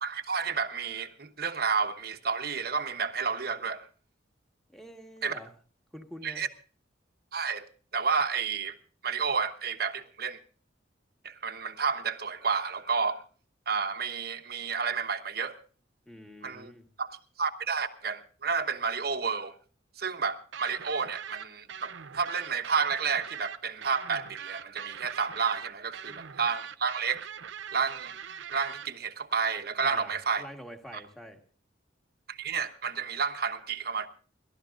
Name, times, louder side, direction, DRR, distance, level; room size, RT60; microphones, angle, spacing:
voice 1, 0.0-3.9 5.2-5.4 6.2-6.5 7.3-7.7 7.9-8.8 9.0-10.4 11.2-13.2 13.7-15.6 16.4-16.7 17.0-19.5 20.0-27.2 27.7-28.1 28.5-30.4 30.9-31.0 32.3-34.1, right 5 dB, 55° right, 1.0 m, -31 dB
voice 2, 4.7-5.5 5.9-6.5 16.1-16.8 26.1-26.2 29.8-31.4, equal, ahead, 1.5 m, -46 dB
sound 1, 20.5-28.9, right 8 dB, 85° right, 0.6 m, -42 dB
29.5 x 12.5 x 2.5 m
head